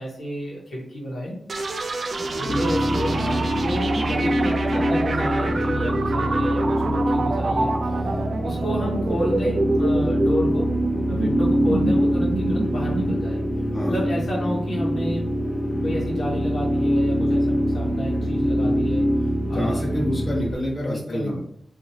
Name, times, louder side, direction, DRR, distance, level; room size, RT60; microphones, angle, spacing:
voice 1, 0.0-1.4 2.4-10.7 11.1-13.4 13.9-15.3 15.8-19.1 19.5-19.7 20.8-21.4, equal, 85° left, -5 dB, 1.1 m, -30 dB
sound 1, 1.5-15.1, right 3 dB, 60° right, 0.3 m, -28 dB
voice 2, 2.1-2.4 13.7-13.9 14.3-14.5 19.5-21.4, left 1 dB, 35° left, -3 dB, 1.0 m, -28 dB
sound 2, 2.5-20.6, equal, 15° left, 0.3 m, -24 dB
2.8 x 2.4 x 2.7 m, 0.64 s
wide cardioid pair, 110°, 0 cm